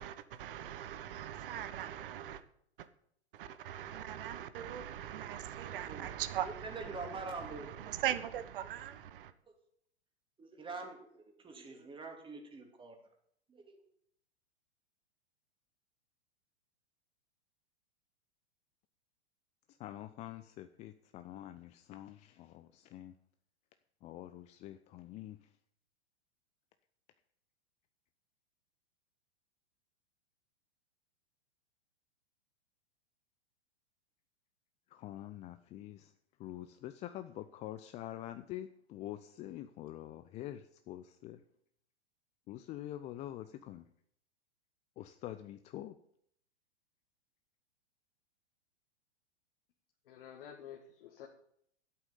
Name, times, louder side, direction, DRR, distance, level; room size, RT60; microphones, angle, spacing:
voice 1, 0.0-2.4 2.8-2.9 3.3-9.3, right 11 dB, 50° right, 1.2 m, -40 dB
voice 2, 5.7-6.1 6.4-8.0 10.4-13.0 13.5-13.8, right 3 dB, 15° right, 2.8 m, -45 dB
voice 3, 19.7-23.1 24.0-25.5 34.9-36.1 36.4-41.4 42.5-43.9 45.0-46.0, left 13 dB, 20° left, 0.5 m, -46 dB
voice 4, 50.0-51.3, left 9 dB, 55° left, 2.0 m, -50 dB
12.5 x 8.5 x 7.2 m
figure-of-eight pair, 105°, 33 cm